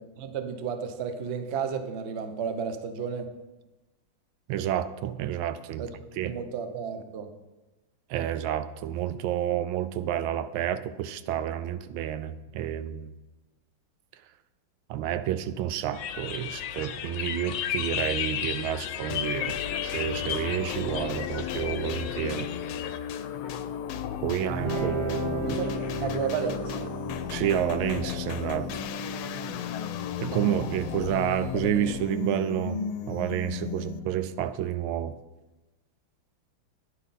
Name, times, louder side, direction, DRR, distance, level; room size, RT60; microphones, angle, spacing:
voice 1, 0.0-3.3 5.8-5.9 6.2-7.3 25.4-26.9, right 6 dB, 55° right, 8 dB, 0.7 m, -32 dB
voice 2, 4.5-5.9 6.2-6.4 8.1-13.1 14.9-22.5 24.2-25.6 27.3-28.8 30.2-32.8 33.1-35.1, right 10 dB, 85° right, 13 dB, 1.4 m, -30 dB
sound 1, 15.9-23.0, left 9 dB, 70° left, 1.2 m, -34 dB
sound 2, 19.1-34.2, left 8 dB, 90° left, 1.5 m, -35 dB
Guitar, 24.5-31.6, right 1 dB, 35° right, 1.2 m, -36 dB
9.9 x 9.6 x 4.2 m, 1.1 s
omnidirectional pair, 2.2 m